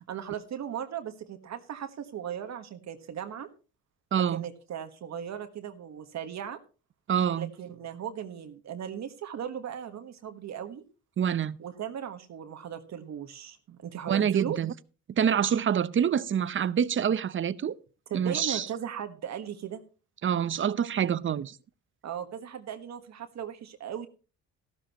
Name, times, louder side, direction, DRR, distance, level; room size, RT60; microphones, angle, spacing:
voice 1, 0.1-3.5 4.3-6.6 7.3-10.8 11.6-14.6 18.1-19.8 22.0-24.1, right 9 dB, 65° right, 1.4 m, -37 dB
voice 2, 4.1-4.4 7.1-7.5 11.2-11.6 14.1-14.7 15.2-17.8 18.1-18.7 20.2-21.6, right 8 dB, 40° right, 0.7 m, -26 dB
14.0 x 12.5 x 3.0 m
cardioid pair, 90°, 30 cm